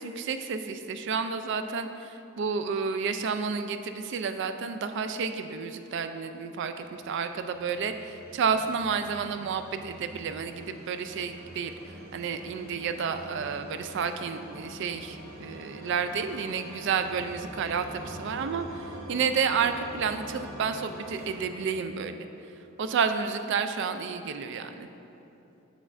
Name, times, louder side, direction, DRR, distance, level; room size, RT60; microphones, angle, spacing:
voice 1, 0.0-11.7 12.1-22.2 22.8-24.9, right 6 dB, 60° right, 8 dB, 0.3 m, -30 dB
sound 1, 6.4-22.6, equal, 85° right, 1.1 m, -45 dB
7.9 x 6.2 x 2.5 m, 2.9 s
head